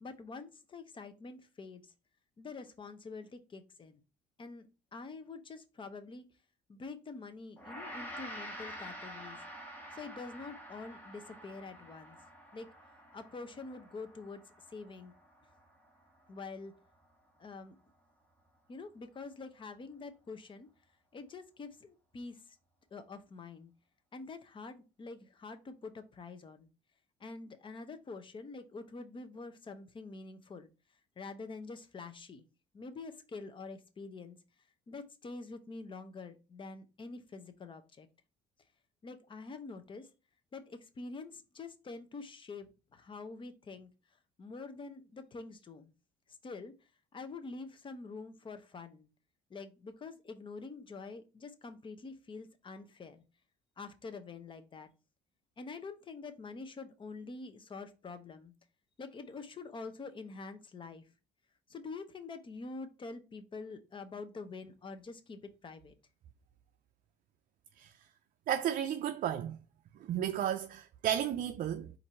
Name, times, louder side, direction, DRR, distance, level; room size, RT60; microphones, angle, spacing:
voice 1, 0.0-1.8 2.4-4.0 4.4-6.3 6.7-9.4 9.9-12.2 12.5-12.7 13.1-14.4 14.7-15.1 16.3-16.7 17.4-17.8 18.7-20.7 21.1-22.4 22.9-23.7 24.1-26.7 27.2-30.7 31.2-32.5 32.7-34.4 34.9-38.1 39.0-40.1 40.5-43.9 44.4-45.9 46.4-46.7 47.1-49.1 49.5-53.2 53.8-54.9 55.6-58.5 59.0-61.0 61.7-66.0, left 4 dB, 30° left, 0.7 m, -46 dB
Gong, 7.6-16.9, equal, 10° left, 1.2 m, -48 dB
voice 2, 68.5-69.6 70.0-71.9, right 10 dB, 55° right, 0.4 m, -33 dB
4.4 x 2.6 x 4.3 m
cardioid pair, 110°, 17 cm